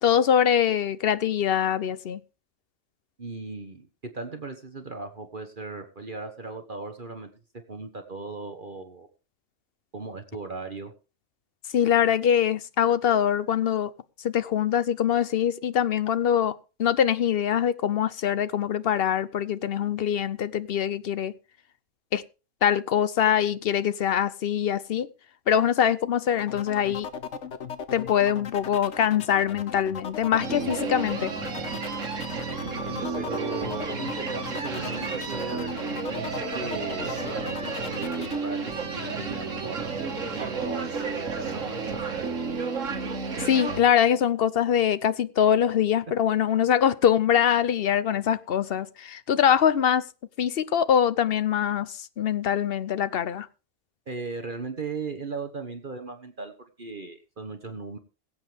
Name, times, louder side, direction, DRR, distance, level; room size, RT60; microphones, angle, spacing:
voice 1, 0.0-2.2 11.7-13.9 14.2-21.3 22.1-22.2 22.6-25.1 25.5-27.1 27.9-31.3 43.4-50.0 50.4-53.5, left 9 dB, 55° left, 0.9 m, -23 dB
voice 2, 3.2-7.3 7.7-9.1 9.9-10.9 32.5-35.7 36.1-41.8 42.1-42.4 54.1-56.5 56.8-58.0, right 3 dB, 40° right, 1.5 m, -37 dB
sound 1, 26.4-38.4, left 7 dB, 70° left, 1.2 m, -38 dB
sound 2, 30.4-43.8, right 4 dB, 75° right, 2.1 m, -32 dB
21.5 x 8.1 x 3.5 m
omnidirectional pair, 1.3 m